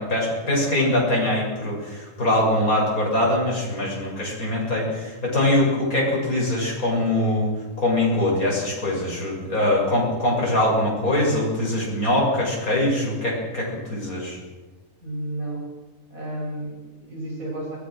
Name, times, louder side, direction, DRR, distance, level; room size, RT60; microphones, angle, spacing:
voice 1, 0.0-7.5 7.8-14.4, left 1 dB, 80° left, -3 dB, 7.5 m, -23 dB
voice 2, 15.0-15.7 16.1-17.8, right 1 dB, 75° right, -2 dB, 8.4 m, -32 dB
24.0 x 20.5 x 6.4 m, 1.2 s
omnidirectional pair, 1.5 m